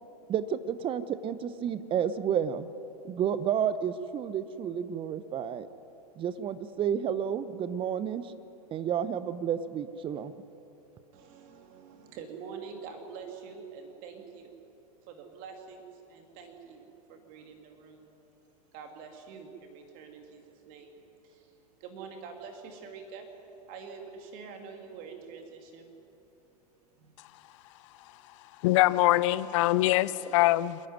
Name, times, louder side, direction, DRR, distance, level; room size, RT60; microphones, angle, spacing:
voice 1, 0.3-2.7 3.0-5.7 6.2-8.3 8.7-10.3, right 8 dB, 25° right, 15 dB, 0.8 m, -31 dB
voice 2, 11.1-14.6 15.0-18.1 18.7-20.9 21.2-23.3 23.7-25.9 27.0-27.1 30.1-30.4, right 5 dB, 45° right, 4 dB, 2.5 m, -46 dB
voice 3, 28.6-30.8, left 17 dB, 50° left, 17 dB, 0.7 m, -23 dB
28.0 x 11.0 x 9.6 m, 2.9 s
figure-of-eight pair, 95°, 20 cm